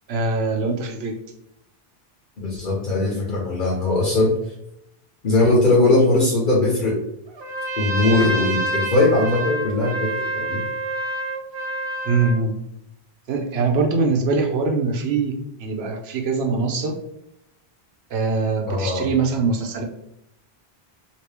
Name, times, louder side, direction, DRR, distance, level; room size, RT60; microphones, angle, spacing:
voice 1, 0.1-1.2 12.0-12.6 13.3-17.0 18.1-19.8, right 4 dB, 80° right, 3 dB, 0.9 m, -22 dB
voice 2, 2.4-4.3 5.2-7.0 7.8-10.6 18.7-19.1, left 2 dB, 55° left, -3 dB, 1.0 m, -20 dB
Trumpet, 7.4-12.4, right 2 dB, 45° right, 0.3 m, -27 dB
2.9 x 2.8 x 3.3 m, 0.78 s
omnidirectional pair, 1.0 m